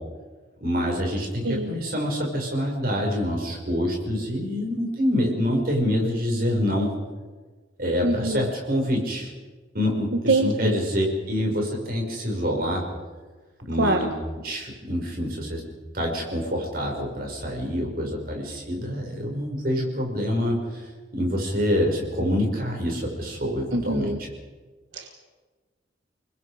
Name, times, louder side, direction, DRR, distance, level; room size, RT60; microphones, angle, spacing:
voice 1, 0.6-6.9 7.8-9.3 9.7-12.8 13.7-14.1 14.4-15.6 15.9-20.9 21.1-24.1, equal, 50° right, 0 dB, 5.9 m, -26 dB
voice 2, 1.4-1.7 8.0-8.5 10.3-10.8 13.8-14.0 23.7-24.2 24.9-25.2, right 2 dB, 85° right, 5 dB, 1.5 m, -24 dB
30.0 x 20.5 x 5.1 m, 1.3 s
head